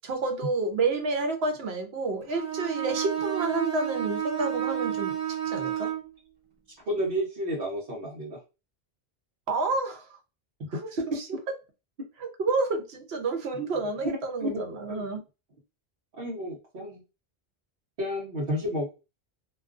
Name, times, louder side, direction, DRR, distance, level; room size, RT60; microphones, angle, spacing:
voice 1, 0.0-5.2 5.5-5.9 9.5-10.1 10.7-10.8 12.2-15.2, right 3 dB, 90° right, 5 dB, 1.0 m, -29 dB
Bowed string instrument, 2.3-6.1, right 10 dB, 40° right, 0.6 m, -30 dB
voice 2, 6.9-8.4 11.0-11.1 14.0-14.5 14.9-15.1 16.2-17.0 18.0-18.9, equal, 65° right, -5 dB, 0.9 m, -31 dB
2.4 x 2.3 x 2.4 m, 0.28 s
omnidirectional pair, 1.0 m